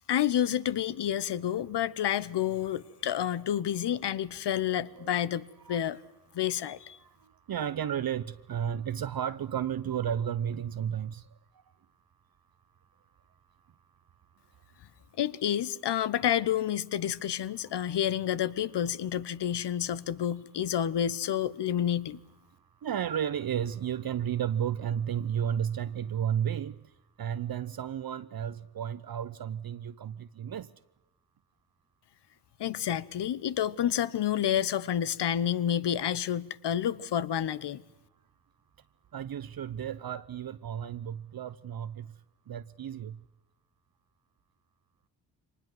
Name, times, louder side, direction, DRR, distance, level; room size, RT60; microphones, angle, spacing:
voice 1, 0.1-6.0 6.3-7.0 15.2-22.2 32.6-37.8, left 10 dB, 65° left, 1.1 m, -29 dB
voice 2, 7.0-11.3 22.8-26.8 27.2-30.7 39.1-42.2 42.5-43.2, right 9 dB, 50° right, 0.8 m, -33 dB
23.5 x 19.5 x 7.8 m
supercardioid pair, 60°, 45 cm